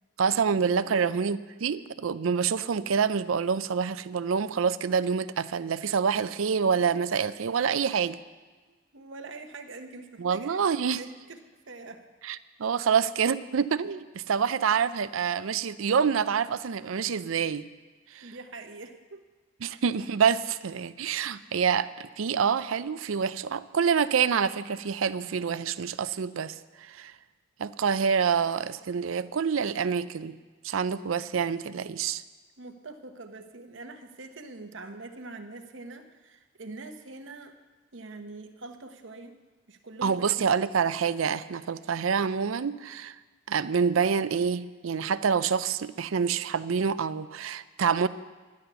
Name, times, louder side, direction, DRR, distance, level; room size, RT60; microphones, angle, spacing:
voice 1, 0.2-8.2 10.2-11.0 12.3-17.7 18.1-18.3 19.6-27.1 27.6-30.4 30.6-32.2 40.0-43.2 43.5-48.1, right 6 dB, 85° right, 14 dB, 0.5 m, -27 dB
voice 2, 8.9-11.4 11.7-12.0 18.2-19.2 19.7-19.8 32.6-37.5 37.9-39.4 39.7-40.5, right 3 dB, 65° right, 5 dB, 1.1 m, -44 dB
11.5 x 10.5 x 6.8 m, 1.3 s
head